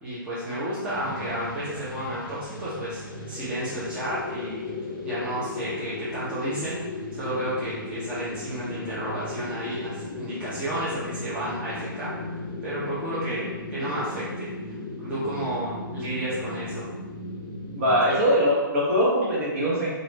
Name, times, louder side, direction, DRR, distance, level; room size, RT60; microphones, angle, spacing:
voice 1, 0.0-4.7 5.0-12.1 12.6-13.5 13.7-16.9, right 1 dB, 10° right, -12 dB, 0.8 m, -32 dB
sound 1, 0.9-18.2, left 2 dB, 25° left, 0.6 m, -36 dB
voice 2, 17.7-19.9, equal, 40° right, -5 dB, 1.1 m, -22 dB
3.0 x 2.5 x 3.3 m, 1.2 s
figure-of-eight pair, 135°, 12 cm